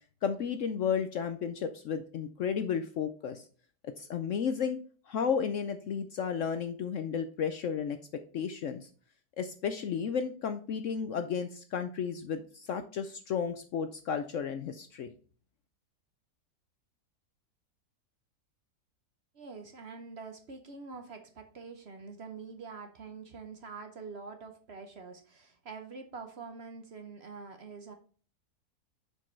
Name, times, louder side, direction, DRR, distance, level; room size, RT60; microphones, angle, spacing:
voice 1, 0.2-3.4 3.8-4.8 5.1-8.0 8.3-8.9 9.4-15.1, left 7 dB, 65° left, 9 dB, 0.8 m, -33 dB
voice 2, 19.3-28.0, right 4 dB, 50° right, 5 dB, 0.9 m, -45 dB
6.3 x 5.3 x 4.4 m, 0.42 s
omnidirectional pair, 1.7 m